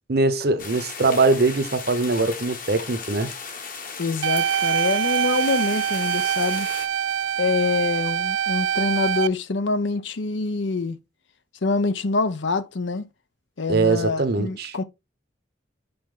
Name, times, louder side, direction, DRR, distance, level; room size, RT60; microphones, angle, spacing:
voice 1, 0.1-3.3 13.7-14.7, right 3 dB, 55° right, 0.9 m, -22 dB
sound 1, 0.6-6.9, left 5 dB, 45° left, 1.3 m, -36 dB
voice 2, 4.0-6.7 7.4-11.0 11.6-13.0 13.6-14.8, left 3 dB, 75° left, 0.7 m, -25 dB
sound 2, 4.2-9.3, right 9 dB, 80° right, 0.3 m, -24 dB
5.7 x 5.2 x 3.7 m
head